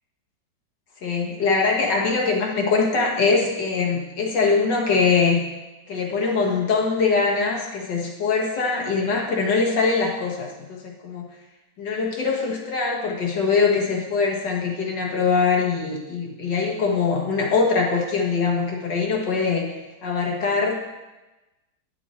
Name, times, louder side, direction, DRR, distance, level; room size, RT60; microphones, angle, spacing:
voice 1, 1.0-5.5 5.9-11.3 11.8-19.7 20.0-20.7, left 4 dB, 85° left, -1 dB, 2.0 m, -22 dB
10.0 x 6.3 x 4.3 m, 1.1 s
omnidirectional pair, 1.8 m